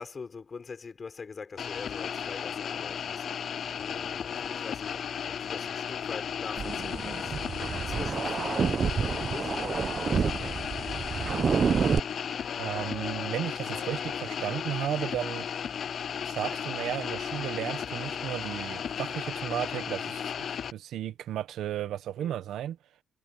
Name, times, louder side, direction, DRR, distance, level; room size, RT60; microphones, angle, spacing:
voice 1, 0.0-3.2 3.8-10.7 22.2-22.4, left 5 dB, 35° left, 3.9 m, -44 dB
sound 1, 1.6-20.7, left 8 dB, 55° left, 0.4 m, -35 dB
sound 2, 6.6-12.0, right 6 dB, 45° right, 0.7 m, -29 dB
sound 3, 6.7-7.8 8.2-9.6 9.9-12.0 12.3-14.3, left 10 dB, 70° left, 3.7 m, -49 dB
voice 2, 12.6-15.6 16.2-22.8, right 11 dB, 80° right, 1.3 m, -34 dB
cardioid pair, 90°, 0 cm